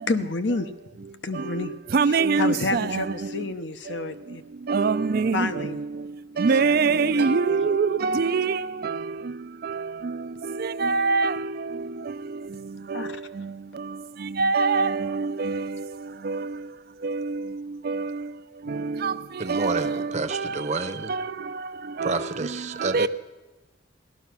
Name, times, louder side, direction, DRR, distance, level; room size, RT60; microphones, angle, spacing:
voice 1, 0.1-0.7 1.2-1.7 2.1-4.4 5.3-5.8 6.3-7.7 12.9-13.2, left 3 dB, 65° left, 0.9 m, -30 dB
voice 2, 1.9-3.0 4.7-5.7 6.4-9.0 9.7-9.8 10.0-10.1 10.6-11.5 12.9-13.1 14.4-15.8 16.2-16.5 17.0-17.4 17.9-18.2 19.0-19.1 19.5-20.5 21.1-21.2 22.0-22.2 22.8-23.1, right 4 dB, 50° right, 0.4 m, -24 dB
voice 3, 19.4-21.2 22.0-23.1, right 3 dB, 35° right, 0.8 m, -29 dB
17.0 x 12.0 x 6.0 m
head